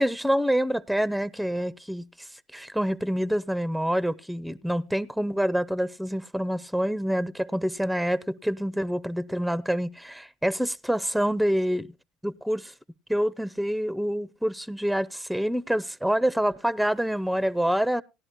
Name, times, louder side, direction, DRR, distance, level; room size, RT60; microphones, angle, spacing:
voice 1, 0.0-2.1 2.5-11.9 12.2-12.7 13.1-18.0, equal, ahead, 0.5 m, -26 dB
18.0 x 11.0 x 2.2 m
supercardioid pair, 85°, 0 cm